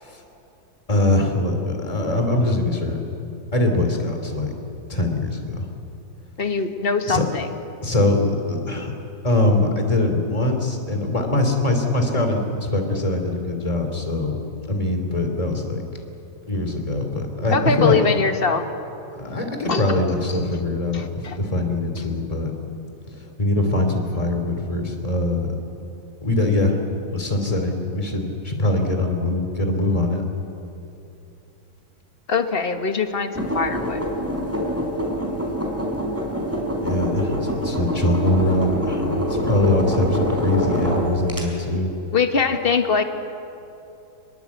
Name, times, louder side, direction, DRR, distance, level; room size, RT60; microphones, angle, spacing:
voice 1, 0.9-3.0 3.5-4.5 4.9-5.7 7.1-7.2 7.8-8.9 9.2-14.4 14.7-15.8 16.5-18.0 19.1-22.5 23.2-25.5 26.2-26.8 27.1-30.2 36.8-41.9, left 2 dB, 15° left, 4 dB, 2.9 m, -22 dB
voice 2, 6.4-7.5 17.5-18.6 19.7-19.8 20.9-21.4 32.3-34.0 42.1-43.0, left 5 dB, 30° left, 7 dB, 1.4 m, -22 dB
sound 1, 33.3-41.4, equal, 5° right, 4.4 m, -25 dB
26.5 x 21.5 x 8.4 m, 2.8 s
omnidirectional pair, 2.2 m